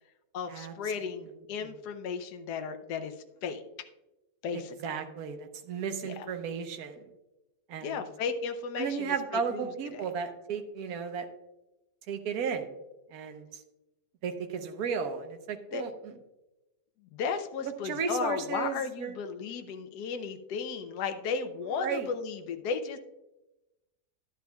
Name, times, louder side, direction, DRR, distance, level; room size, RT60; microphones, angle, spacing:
voice 1, 0.3-3.1 3.4-3.6 4.4-4.7 6.0-6.1 7.8-9.1 9.5-10.0 15.7-15.8 17.1-23.0, left 6 dB, 75° left, 8 dB, 1.3 m, -34 dB
voice 2, 4.5-7.1 7.7-8.1 8.8-11.3 12.1-12.7 13.1-13.6 14.2-16.2 17.8-19.2 21.8-22.1, right 6 dB, 65° right, 6 dB, 1.3 m, -34 dB
11.5 x 9.7 x 2.3 m, 0.98 s
omnidirectional pair, 1.8 m